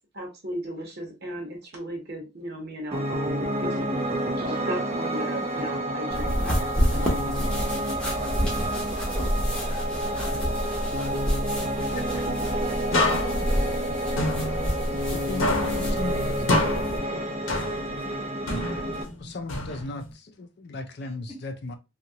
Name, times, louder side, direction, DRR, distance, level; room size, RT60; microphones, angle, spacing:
voice 1, 0.1-4.0 4.4-7.6, right 1 dB, 50° right, 0.8 m, -36 dB
Piano, 2.9-19.0, right 1 dB, 30° right, 0.4 m, -29 dB
sound 1, 6.1-17.0, equal, 5° left, 0.7 m, -29 dB
voice 2, 8.0-9.3 9.6-10.4 11.5-12.2 12.5-12.8 13.3-13.4 14.9-15.0, left 2 dB, 30° left, 0.9 m, -45 dB
sound 2, 12.9-15.1 15.4-18.1 18.5-20.1, left 2 dB, 85° left, 0.8 m, -28 dB
voice 3, 15.3-17.0 19.2-20.0 20.4-21.7, left 2 dB, 55° left, 0.5 m, -36 dB
2.8 x 2.4 x 2.7 m
head